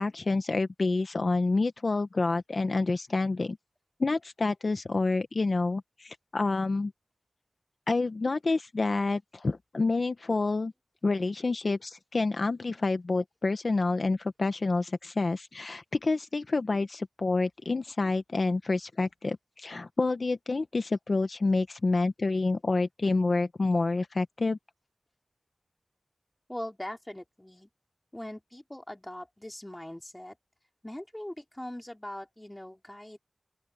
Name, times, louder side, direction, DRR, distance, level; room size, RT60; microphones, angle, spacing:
voice 1, 0.0-3.6 4.0-6.9 7.9-10.7 11.0-24.6, left 3 dB, 60° left, 0.9 m, -28 dB
voice 2, 26.5-27.7 28.1-30.4 30.8-33.2, left 1 dB, 15° left, 4.3 m, -41 dB
open air
wide cardioid pair, 80°, 0 cm